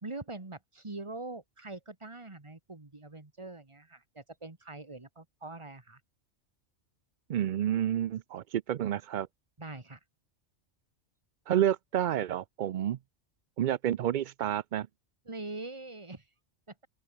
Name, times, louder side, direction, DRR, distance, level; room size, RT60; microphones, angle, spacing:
voice 1, 0.0-6.0 9.6-10.0 15.3-16.2 16.7-16.8, right 2 dB, 25° right, 1.8 m, -43 dB
voice 2, 7.3-9.3 11.5-13.0 13.6-14.9, right 11 dB, 65° right, 0.5 m, -29 dB
open air
omnidirectional pair, 1.3 m